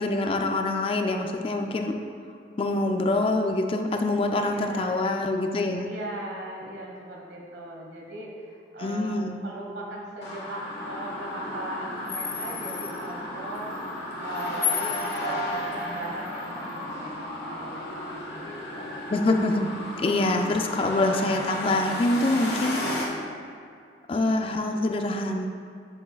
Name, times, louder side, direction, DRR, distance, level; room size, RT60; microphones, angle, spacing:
voice 1, 0.0-2.0 2.6-5.9 8.8-9.4 19.1-19.7 20.0-22.8 24.1-25.5, left 2 dB, 30° left, 4 dB, 0.3 m, -25 dB
voice 2, 4.4-5.1 5.8-19.1 19.9-20.6 22.7-23.1, right 1 dB, 75° right, -2 dB, 1.3 m, -39 dB
sound 1, 10.2-23.1, left 2 dB, 70° left, 1.3 m, -33 dB
7.2 x 7.0 x 2.3 m, 2.3 s
head